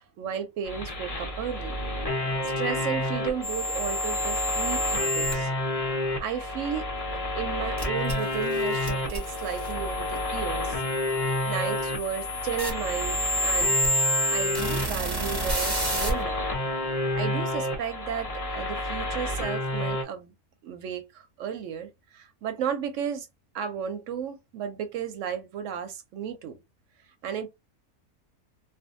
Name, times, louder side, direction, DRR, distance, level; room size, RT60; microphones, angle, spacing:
voice 1, 0.2-1.8 2.4-5.5 6.2-6.9 7.1-10.8 11.5-13.8 14.3-16.5 17.1-20.3 20.6-23.3 23.5-26.6 27.2-27.5, right 8 dB, 65° right, 0.8 m, -34 dB
sound 1, 0.6-20.0, left 1 dB, 50° left, 0.4 m, -30 dB
sound 2, 3.4-5.3 7.8-16.1, equal, 20° right, 0.6 m, -30 dB
2.5 x 2.3 x 2.5 m
omnidirectional pair, 1.6 m